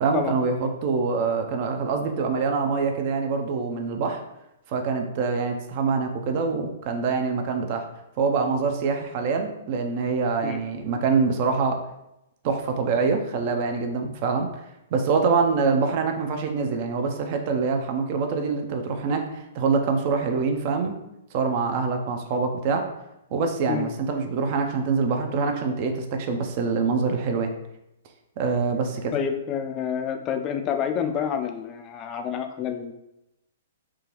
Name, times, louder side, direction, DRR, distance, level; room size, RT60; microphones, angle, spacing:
voice 1, 0.0-4.2 4.7-7.8 8.2-11.8 12.4-14.5 14.9-21.0 21.3-22.8 23.3-27.5 28.4-29.1, right 4 dB, 40° right, 4 dB, 0.5 m, -25 dB
voice 2, 29.1-32.9, left 8 dB, 25° left, 6 dB, 0.4 m, -28 dB
3.6 x 2.9 x 3.0 m, 0.89 s
figure-of-eight pair, 115°, 0 cm